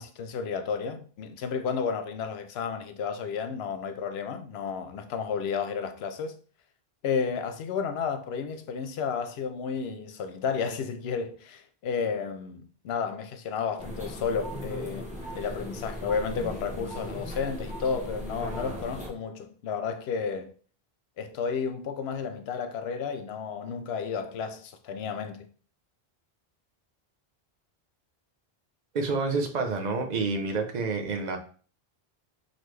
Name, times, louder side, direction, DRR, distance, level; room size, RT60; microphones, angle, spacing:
voice 1, 0.0-6.4 7.0-20.5 21.2-25.5, left 6 dB, 80° left, 0.8 m, -32 dB
sound 1, 13.8-19.1, equal, 5° right, 1.0 m, -38 dB
voice 2, 28.9-31.4, right 4 dB, 50° right, 0.8 m, -28 dB
3.9 x 3.0 x 3.3 m
omnidirectional pair, 1.0 m